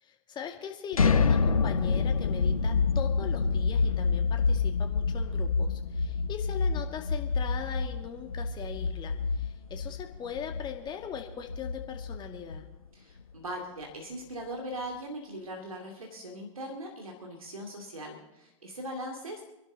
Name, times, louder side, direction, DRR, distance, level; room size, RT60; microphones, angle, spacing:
voice 1, 0.0-12.6, left 8 dB, 25° left, 3 dB, 2.2 m, -40 dB
sound 1, 0.9-12.8, left 4 dB, 90° left, 0.7 m, -27 dB
voice 2, 12.9-19.4, equal, 85° right, 1 dB, 2.6 m, -40 dB
25.5 x 11.5 x 4.0 m, 0.96 s
figure-of-eight pair, 100°, 17 cm